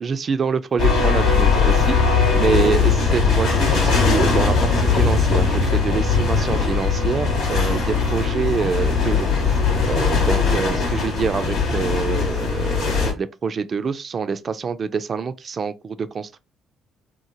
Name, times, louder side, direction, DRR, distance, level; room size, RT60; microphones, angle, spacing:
voice 1, 0.0-2.0 2.3-9.5 9.8-16.4, right 5 dB, 45° right, 0.3 m, -26 dB
sound 1, 0.8-13.1, left 5 dB, 80° left, 0.9 m, -19 dB
3.0 x 2.0 x 2.7 m
hypercardioid pair, 55°, 0 cm